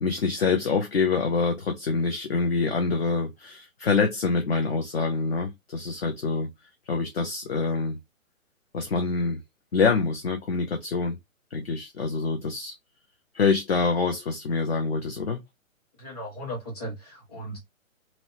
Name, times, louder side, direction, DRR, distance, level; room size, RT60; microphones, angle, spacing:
voice 1, 0.0-6.5 6.9-8.0 8.7-9.4 9.7-11.2 11.5-12.7 13.3-15.4, left 4 dB, 50° left, 0.5 m, -26 dB
voice 2, 16.0-17.6, equal, 30° left, 1.4 m, -36 dB
2.8 x 2.0 x 2.7 m
hypercardioid pair, 170°, 41 cm